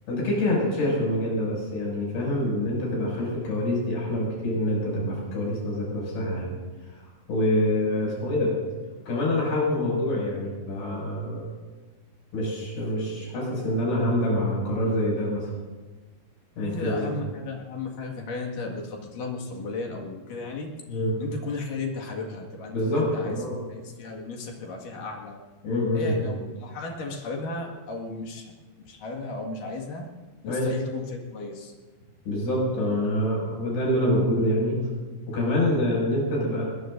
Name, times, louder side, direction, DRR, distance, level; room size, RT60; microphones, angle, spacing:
voice 1, 0.1-6.5 6.9-7.0 7.3-8.5 9.1-11.5 12.3-15.5 16.6-17.1 20.9-21.1 22.7-23.6 25.6-26.4 30.5-30.7 32.3-34.8 35.3-36.6, left 1 dB, 75° left, -4 dB, 8.7 m, -26 dB
voice 2, 16.6-20.7 21.2-23.4 23.7-25.4 25.9-28.5 28.9-30.1 30.4-31.7, left 3 dB, 55° left, 0 dB, 3.2 m, -35 dB
22.0 x 21.0 x 2.6 m, 1.3 s
omnidirectional pair, 5.0 m